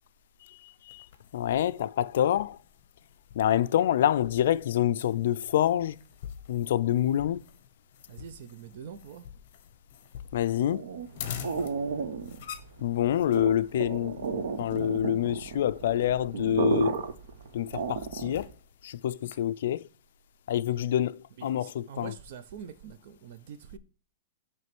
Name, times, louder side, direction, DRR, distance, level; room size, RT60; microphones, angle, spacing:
voice 1, 0.6-1.1 1.3-2.6 3.4-6.0 6.5-7.4 10.3-10.8 12.8-16.9 17.5-18.5 18.8-19.8 20.5-22.1, left 11 dB, 60° left, 0.3 m, -27 dB
sound 1, 0.9-19.3, left 9 dB, 45° left, 0.9 m, -47 dB
voice 2, 8.1-9.3 21.4-23.8, right 7 dB, 50° right, 0.6 m, -44 dB
sound 2, 10.7-18.5, right 5 dB, 75° right, 0.9 m, -33 dB
7.6 x 3.1 x 5.9 m
supercardioid pair, 170°, 0 cm